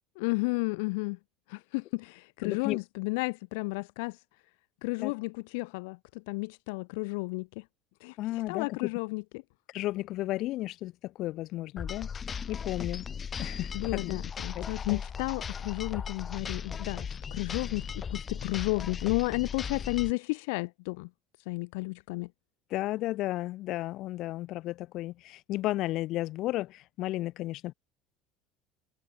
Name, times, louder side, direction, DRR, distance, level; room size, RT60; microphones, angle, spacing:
voice 1, 0.2-1.2 1.5-4.2 4.8-7.6 8.0-8.2 8.5-9.2 13.7-21.1 21.5-22.3, left 29 dB, 90° left, 0.9 m, -32 dB
voice 2, 2.4-2.8 5.0-5.1 8.2-8.9 9.7-12.1 12.5-13.1 13.4-14.2 14.5-15.0 22.7-27.7, left 16 dB, 60° left, 2.2 m, -33 dB
sound 1, 11.8-20.1, left 6 dB, 25° left, 2.4 m, -37 dB
cardioid pair, 135°, 0 cm